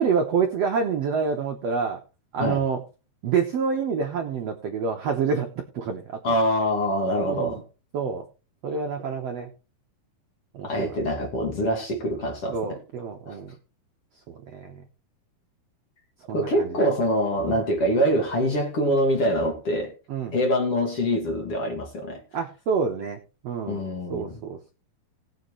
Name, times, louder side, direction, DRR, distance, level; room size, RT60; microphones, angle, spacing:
voice 1, 0.0-2.0 2.3-2.8 3.2-5.5 5.7-6.2 7.2-7.6 7.9-8.2 8.6-9.5 10.5-10.9 12.5-13.5 14.3-14.8 16.3-16.8 17.5-17.6 20.1-20.4 22.3-23.8 24.1-24.7, right 6 dB, 85° right, 1.4 m, -27 dB
voice 2, 6.2-7.6 10.6-12.8 13.3-13.4 16.3-19.9 20.3-22.2 23.7-24.4, equal, 45° left, 2.3 m, -24 dB
19.0 x 7.2 x 3.1 m
omnidirectional pair, 4.6 m